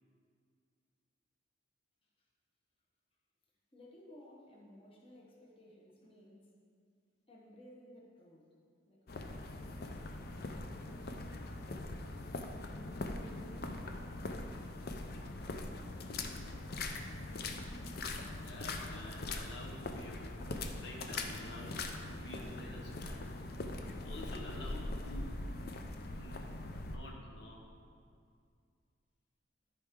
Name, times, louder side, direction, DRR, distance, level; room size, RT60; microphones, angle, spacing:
voice 1, 3.7-6.5 7.3-8.6 8.9-12.0 12.7-14.6 14.9-16.7, left 1 dB, 30° left, -3 dB, 1.1 m, -59 dB
sound 1, 9.1-27.0, left 2 dB, 55° left, 0.6 m, -42 dB
voice 2, 18.4-20.2 20.8-23.3 24.0-25.4 26.2-26.5 26.8-27.7, left 1 dB, 70° left, -1 dB, 1.1 m, -50 dB
13.0 x 4.6 x 3.7 m, 2.2 s
head